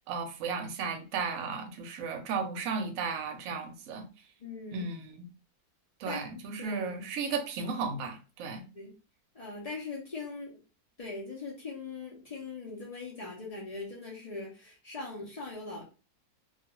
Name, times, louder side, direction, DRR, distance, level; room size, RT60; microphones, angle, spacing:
voice 1, 0.1-4.1 4.7-5.1 6.0-8.6, right 5 dB, 70° right, 5 dB, 0.9 m, -34 dB
voice 2, 4.4-4.9 6.0-6.9 8.7-8.9 9.3-10.6 11.0-15.8, left 3 dB, 80° left, -3 dB, 0.3 m, -41 dB
2.4 x 2.3 x 2.9 m, 0.33 s
omnidirectional pair, 1.6 m